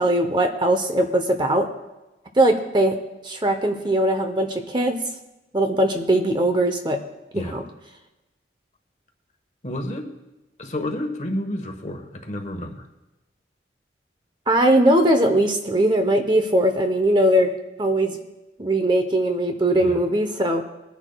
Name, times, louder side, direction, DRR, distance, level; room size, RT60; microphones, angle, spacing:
voice 1, 0.0-1.7 2.4-2.9 3.2-5.0 5.5-7.0 7.3-7.6 14.5-17.5 17.8-18.2 18.6-20.6, right 1 dB, 25° right, 6 dB, 0.7 m, -20 dB
voice 2, 9.6-10.1 10.6-12.9 19.8-20.0, left 1 dB, 40° left, 5 dB, 1.2 m, -30 dB
22.0 x 10.5 x 2.3 m, 1.0 s
head